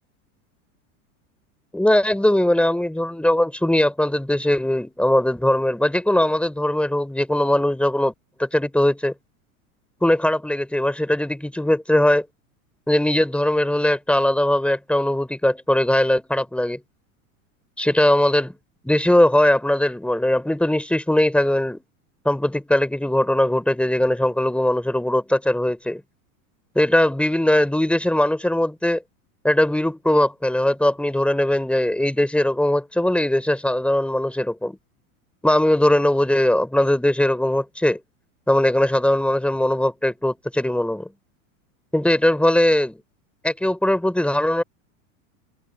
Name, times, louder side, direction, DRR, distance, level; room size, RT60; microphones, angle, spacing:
voice 1, 1.7-8.1 8.4-9.1 10.0-12.3 12.9-16.8 17.8-18.6 18.8-21.8 22.2-26.0 26.8-29.0 29.4-34.8 35.4-38.0 38.5-41.1 41.9-43.0 43.4-44.6, left 1 dB, 5° left, 4.0 m, -20 dB
hypercardioid pair, 100°, 43 cm